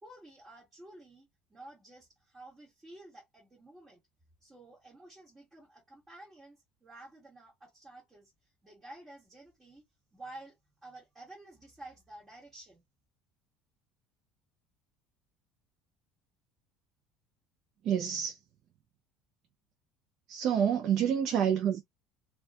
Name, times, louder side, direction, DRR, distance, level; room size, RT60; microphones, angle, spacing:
voice 1, 0.0-4.0 4.4-8.3 8.6-9.8 10.1-10.5 10.8-12.8, right 2 dB, 15° right, 1.4 m, -51 dB
voice 2, 17.8-18.4 20.3-21.8, right 8 dB, 55° right, 0.4 m, -28 dB
2.5 x 2.2 x 2.3 m
cardioid pair, 135°, 0 cm